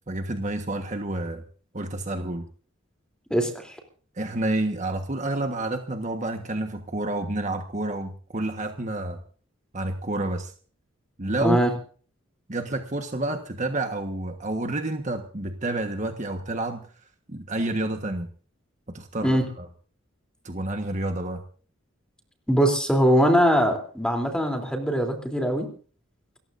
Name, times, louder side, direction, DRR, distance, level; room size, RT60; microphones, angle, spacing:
voice 1, 0.1-1.4 1.7-2.5 4.1-9.2 9.7-10.5 11.2-11.6 12.5-16.9 17.3-18.3 18.9-19.7 20.4-21.4, right 2 dB, 35° right, 5 dB, 1.4 m, -29 dB
voice 2, 3.3-3.7 11.4-11.7 19.2-19.5 22.5-25.7, equal, 5° left, 3 dB, 3.3 m, -22 dB
29.0 x 15.0 x 2.6 m, 0.43 s
head